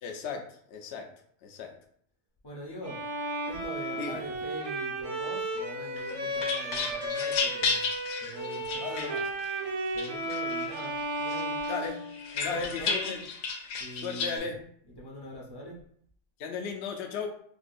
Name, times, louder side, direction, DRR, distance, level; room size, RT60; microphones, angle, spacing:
voice 1, 0.0-1.1 1.4-1.7 4.0-4.2 8.8-9.2 11.7-12.0 12.4-13.2 13.8-14.6 16.4-17.4, left 5 dB, 65° left, 3 dB, 0.7 m, -36 dB
voice 2, 2.4-3.0 3.5-7.8 8.2-9.0 9.9-11.6 12.3-13.2 13.8-14.5 15.0-15.8, equal, 30° left, -4 dB, 0.4 m, -43 dB
Bowed string instrument, 2.8-12.6, right 1 dB, 70° right, 1.1 m, -34 dB
sound 1, 6.0-9.5 10.0-10.9 11.3-14.4, left 4 dB, 85° left, 1.0 m, -33 dB
4.6 x 2.3 x 2.5 m, 0.63 s
omnidirectional pair, 1.4 m